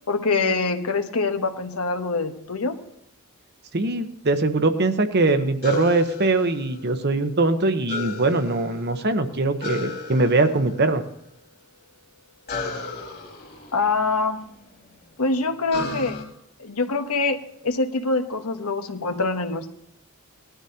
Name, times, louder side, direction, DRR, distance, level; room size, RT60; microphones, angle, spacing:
voice 1, 0.1-2.8 13.7-14.5 15.2-16.2 16.6-17.4 17.6-19.7, left 3 dB, 80° left, 6 dB, 1.1 m, -24 dB
voice 2, 3.7-11.0, right 2 dB, 45° right, 8 dB, 0.9 m, -22 dB
sound 1, 5.6-7.1 7.9-9.1 9.6-10.8 12.5-14.6 15.7-16.2, left 2 dB, 45° left, 2.7 m, -33 dB
19.5 x 13.0 x 2.8 m, 0.75 s
head